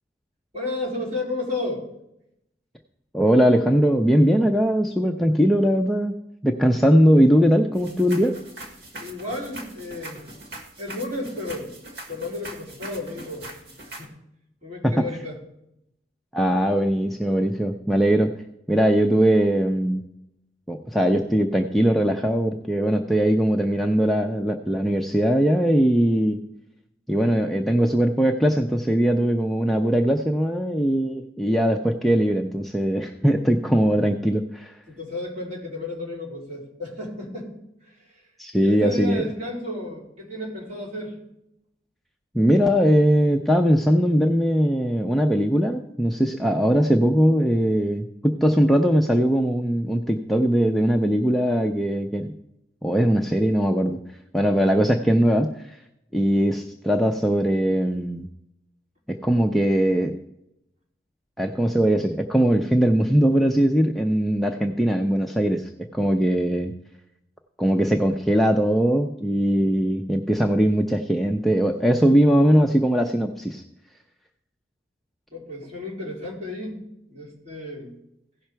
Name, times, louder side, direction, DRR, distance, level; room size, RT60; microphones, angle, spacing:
voice 1, 0.5-1.9 9.0-10.2 10.8-11.7 12.1-13.5 13.9-14.1 14.6-15.4 34.9-37.5 37.8-38.2 38.6-41.2 75.3-78.0, left 2 dB, 40° right, -5 dB, 4.0 m, -32 dB
voice 2, 3.1-6.1 6.4-8.3 14.8-15.0 16.3-18.3 18.7-20.0 20.7-26.4 27.1-34.7 38.4-39.2 42.3-52.3 52.8-54.0 54.3-55.8 56.1-58.3 59.1-60.2 61.4-66.7 67.6-73.6, equal, ahead, 2 dB, 0.5 m, -20 dB
sound 1, 7.7-14.1, right 1 dB, 75° right, 1.8 m, -41 dB
16.0 x 5.7 x 4.5 m, 0.82 s
head